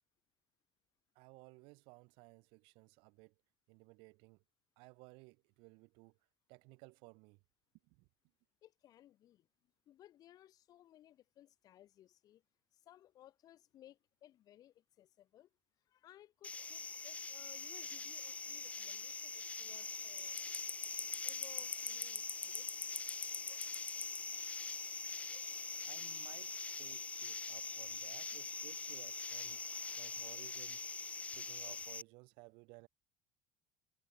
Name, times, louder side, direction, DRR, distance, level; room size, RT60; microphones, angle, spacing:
voice 1, 1.2-3.3 3.7-4.4 4.8-6.2 6.5-7.4 7.8-8.1 25.9-26.5 26.8-29.6 30.0-30.9 31.3-32.9, right 29 dB, 75° right, 1.9 m, -58 dB
voice 2, 8.6-9.5 9.8-12.4 12.7-15.5 15.8-20.8 21.2-22.7 25.5-25.6 29.9-30.0, left 12 dB, 45° left, 1.5 m, -62 dB
sound 1, 16.4-32.0, left 4 dB, 15° left, 0.7 m, -43 dB
cardioid pair, 135°, 9 cm